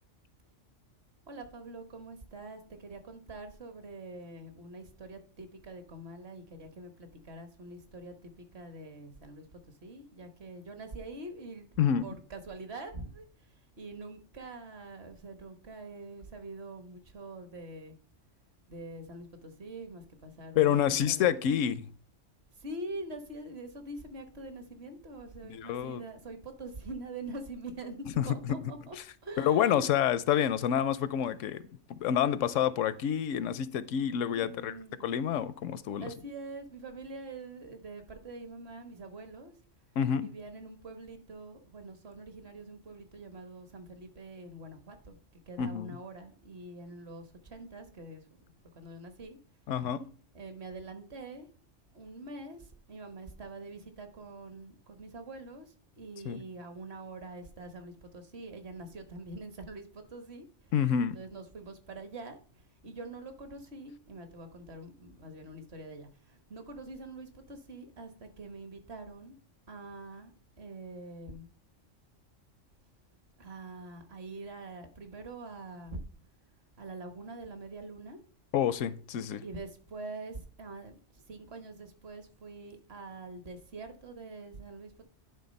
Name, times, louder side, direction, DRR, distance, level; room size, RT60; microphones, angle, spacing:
voice 1, 1.3-11.7 12.0-13.2 13.8-17.9 18.7-20.8 21.1-21.3 22.6-29.0 29.2-29.8 34.2-35.3 36.0-39.5 40.2-45.2 45.5-48.2 48.7-49.4 50.3-51.5 51.9-60.5 61.1-62.4 62.8-69.4 69.7-70.3 70.6-71.5 73.4-76.0 76.8-78.2 79.4-85.0, right 2 dB, 55° right, 1.4 m, -45 dB
voice 2, 20.6-21.9 25.4-26.0 28.2-28.6 29.4-31.6 31.9-34.7 35.0-36.1 40.0-40.3 45.6-46.0 49.7-50.1 56.2-56.4 60.7-61.2 78.5-79.4, left 9 dB, 85° left, 1.0 m, -28 dB
10.5 x 3.8 x 5.2 m
omnidirectional pair, 1.3 m